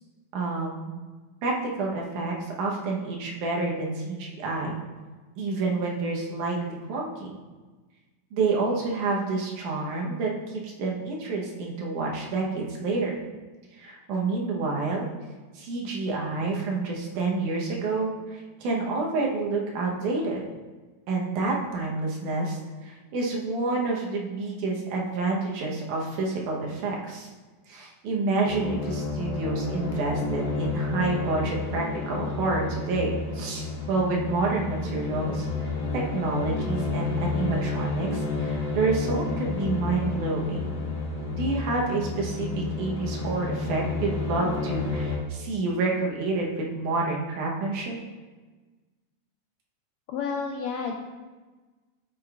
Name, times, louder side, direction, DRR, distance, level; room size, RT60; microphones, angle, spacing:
voice 1, 0.3-0.9 1.4-4.8 5.4-7.3 8.3-13.2 13.8-15.1 15.6-20.4 21.1-27.3 27.7-35.5 35.9-40.7 41.3-48.0, right 3 dB, 80° right, -2 dB, 2.5 m, -28 dB
sound 1, 28.4-45.2, left 3 dB, 50° left, 1.1 m, -30 dB
voice 2, 50.1-51.0, left 5 dB, 80° left, 1 dB, 1.6 m, -30 dB
7.9 x 7.5 x 2.4 m, 1.3 s
omnidirectional pair, 3.5 m